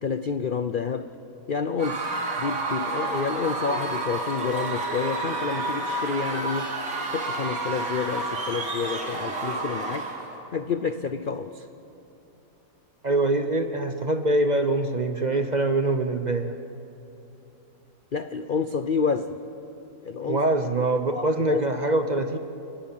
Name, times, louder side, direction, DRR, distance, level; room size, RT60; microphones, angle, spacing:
voice 1, 0.0-1.1 1.5-2.1 2.4-6.7 7.1-10.1 10.5-11.7 18.1-19.4 20.0-20.4 21.1-21.6, left 5 dB, 75° left, 10 dB, 0.4 m, -29 dB
Screaming / Cheering / Crowd, 1.8-10.4, right 2 dB, 90° right, 2.8 m, -30 dB
voice 2, 13.0-16.6 20.3-22.4, right 2 dB, 40° right, 7 dB, 0.7 m, -24 dB
29.5 x 19.0 x 7.3 m, 2.9 s
omnidirectional pair, 1.8 m